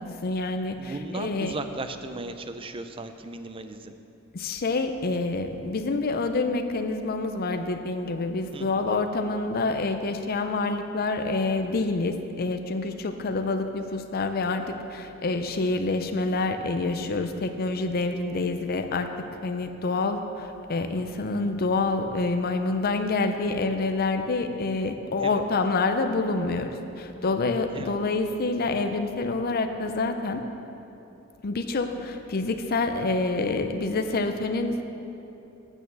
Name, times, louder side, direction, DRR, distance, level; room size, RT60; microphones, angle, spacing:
voice 1, 0.0-1.6 4.3-19.1 19.4-30.4 31.4-34.8, left 3 dB, 45° left, 7 dB, 0.5 m, -27 dB
voice 2, 0.8-3.9 8.5-8.9 25.2-25.4 27.7-27.9, right 2 dB, 25° right, 9 dB, 0.4 m, -36 dB
9.0 x 6.3 x 6.8 m, 2.9 s
head